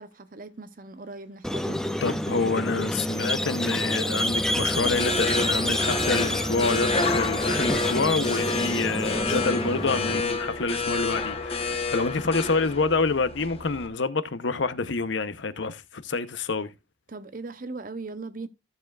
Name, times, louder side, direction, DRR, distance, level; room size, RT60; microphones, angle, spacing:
voice 1, 0.0-2.0 17.1-18.5, right 3 dB, 45° right, 0.8 m, -39 dB
Squeak, 1.4-10.2, left 1 dB, 5° left, 0.5 m, -28 dB
voice 2, 2.0-16.7, left 4 dB, 75° left, 0.8 m, -27 dB
sound 1, 4.3-13.9, left 3 dB, 30° left, 1.0 m, -29 dB
14.5 x 7.0 x 2.4 m
head